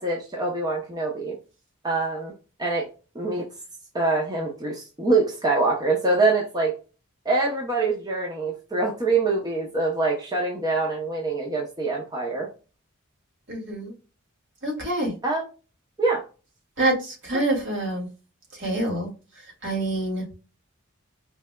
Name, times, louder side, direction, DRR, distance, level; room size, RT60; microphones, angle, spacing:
voice 1, 0.0-1.4 1.8-2.3 2.6-2.9 3.1-3.5 3.9-6.7 7.2-12.5 15.2-15.5 16.0-16.2, right 3 dB, 20° right, -2 dB, 0.7 m, -24 dB
voice 2, 13.5-13.9 14.6-15.2 16.8-18.1 18.5-19.1 19.4-20.2, right 1 dB, 55° right, -1 dB, 2.0 m, -26 dB
4.7 x 3.3 x 2.2 m, 0.33 s
head